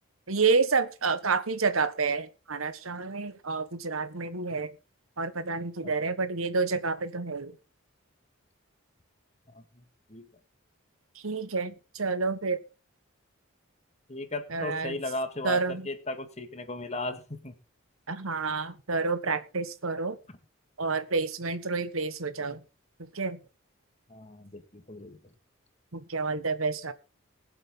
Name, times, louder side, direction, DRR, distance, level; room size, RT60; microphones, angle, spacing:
voice 1, 0.3-4.7 5.2-7.5 11.1-12.6 14.5-15.0 15.4-15.9 18.1-20.2 20.8-22.6 23.1-23.4 25.9-26.9, right 4 dB, 85° right, 1.5 m, -29 dB
voice 2, 9.5-9.8 10.1-10.3 14.1-17.5 24.1-25.3, left 2 dB, 35° left, 1.8 m, -36 dB
21.0 x 7.7 x 3.8 m
head